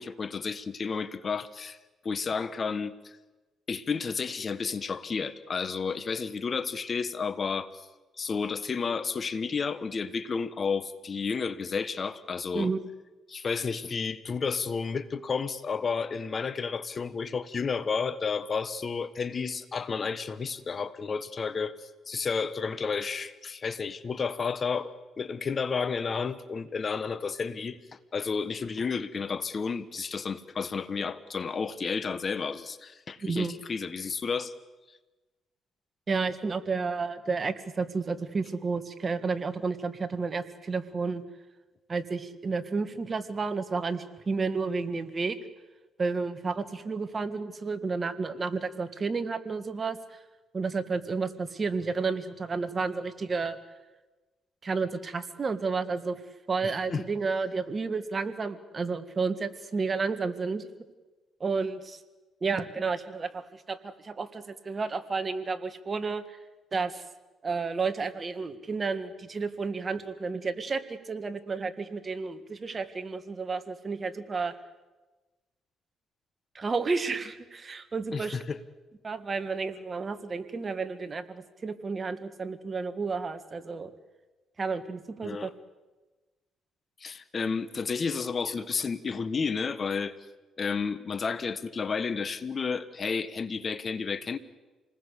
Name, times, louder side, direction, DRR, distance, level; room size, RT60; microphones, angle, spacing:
voice 1, 0.0-1.8 2.0-3.2 3.7-7.8 8.2-12.7 13.3-27.8 28.1-34.5 56.6-57.0 78.1-78.6 85.2-85.5 87.0-90.1 90.6-94.4, left 5 dB, 40° left, 14 dB, 1.2 m, -31 dB
voice 2, 12.5-12.8 33.2-33.6 36.1-41.2 41.9-45.4 46.0-50.2 50.5-53.6 54.6-56.2 56.5-60.7 61.4-62.0 62.4-66.2 66.7-67.0 67.4-74.5 76.6-78.4 79.0-83.9 84.6-85.5, right 4 dB, 35° right, 10 dB, 1.8 m, -31 dB
28.0 x 19.5 x 8.3 m, 1.2 s
cardioid pair, 90°, 0 cm